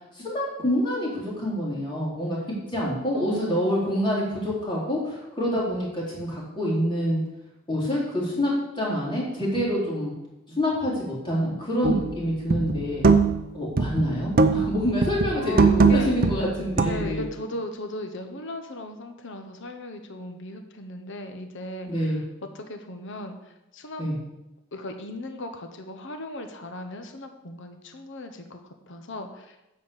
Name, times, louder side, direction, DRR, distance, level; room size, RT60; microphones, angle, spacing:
voice 1, 0.1-7.2 7.7-10.1 10.5-13.0 13.5-17.2 21.9-22.2 24.0-24.1, equal, 25° left, -5 dB, 3.3 m, -27 dB
voice 2, 3.1-4.7 15.3-16.5 16.8-22.2 22.5-24.0 24.7-29.7, left 1 dB, 60° left, 6 dB, 1.0 m, -38 dB
sound 1, 11.8-12.1 12.5-13.5 13.8-14.8 15.0-17.2, right 4 dB, 45° right, 0.6 m, -21 dB
9.6 x 4.4 x 6.9 m, 0.94 s
head